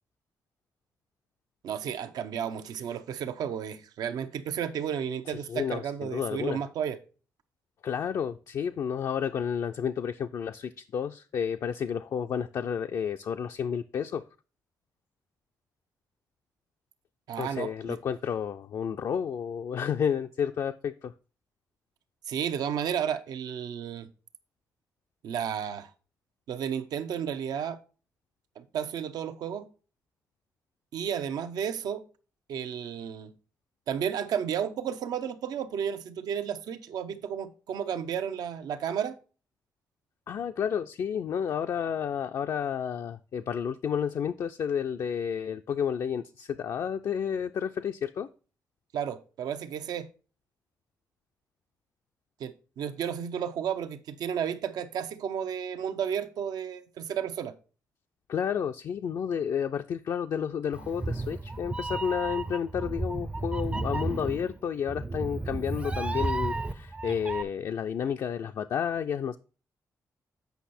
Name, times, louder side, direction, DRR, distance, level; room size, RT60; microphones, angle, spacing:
voice 1, 1.6-7.0 17.3-18.0 22.3-24.1 25.2-25.9 26.5-27.8 28.6-29.7 30.9-32.0 32.5-33.3 33.9-39.2 48.9-50.1 52.4-57.5, right 8 dB, 85° right, 0.8 m, -32 dB
voice 2, 5.3-6.6 7.8-14.2 17.4-21.1 40.3-48.3 58.3-69.4, left 7 dB, 60° left, 0.4 m, -31 dB
Meow, 60.7-67.4, right 2 dB, 20° right, 0.5 m, -33 dB
8.1 x 5.4 x 4.2 m
cardioid pair, 105°, 7 cm